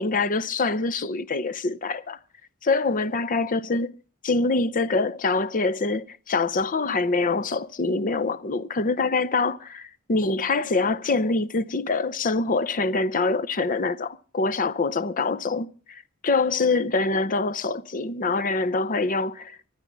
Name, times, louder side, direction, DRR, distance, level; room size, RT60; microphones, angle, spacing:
voice 1, 0.0-2.2 2.6-3.9 4.2-19.6, left 3 dB, 40° left, 0.7 m, -25 dB
25.5 x 10.5 x 4.0 m
head